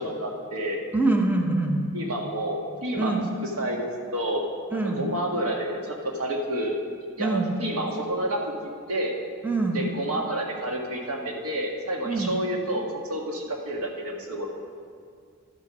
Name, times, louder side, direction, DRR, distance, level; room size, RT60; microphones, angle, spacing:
voice 1, 0.0-0.8 1.9-3.2 3.6-4.4 4.8-6.8 7.2-8.5 8.9-9.2 9.7-14.5, right 1 dB, 85° right, 1 dB, 1.6 m, -29 dB
voice 2, 0.9-1.8 3.0-3.3 4.7-5.0 7.2-7.6 9.4-9.9 12.0-12.4, right 2 dB, 10° right, 2 dB, 0.8 m, -25 dB
12.0 x 8.2 x 6.1 m, 2.1 s
head